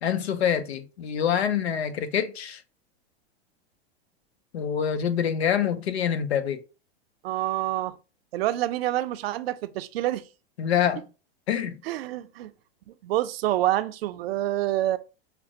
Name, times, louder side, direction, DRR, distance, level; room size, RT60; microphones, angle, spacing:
voice 1, 0.0-2.6 4.5-6.6 10.6-11.1 11.5-11.8, left 8 dB, 85° left, 0.7 m, -26 dB
voice 2, 7.2-8.0 8.3-10.2 11.8-12.5 13.0-15.0, right 14 dB, 70° right, 0.5 m, -27 dB
5.8 x 2.1 x 2.6 m
hypercardioid pair, 115°, 31 cm